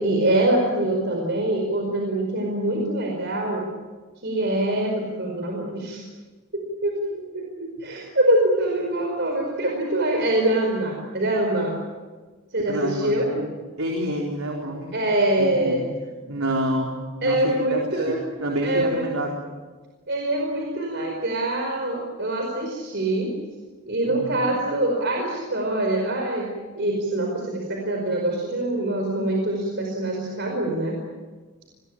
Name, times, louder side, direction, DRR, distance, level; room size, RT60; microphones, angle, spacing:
voice 1, 0.0-3.7 4.2-6.0 6.5-11.7 12.5-13.3 14.9-15.9 17.2-18.2 18.6-19.1 20.1-23.3 23.9-26.5 26.7-31.0, right 1 dB, 50° right, 1 dB, 5.0 m, -24 dB
voice 2, 12.7-13.5 13.8-14.9 15.4-15.9 16.3-17.0 17.2-18.1 18.4-19.4 24.1-24.4, right 1 dB, 80° right, 0 dB, 4.0 m, -28 dB
27.0 x 21.0 x 8.8 m, 1.4 s
head